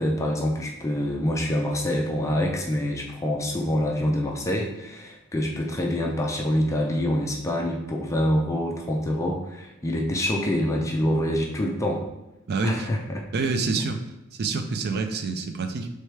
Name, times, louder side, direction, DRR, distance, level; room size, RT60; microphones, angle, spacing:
voice 1, 0.0-12.1 12.6-13.2 13.8-13.9, left 1 dB, 15° left, 0 dB, 0.4 m, -26 dB
voice 2, 12.5-12.9 13.3-14.0 14.3-15.9, right 4 dB, 50° right, 7 dB, 0.4 m, -27 dB
4.7 x 3.3 x 3.2 m, 0.93 s
head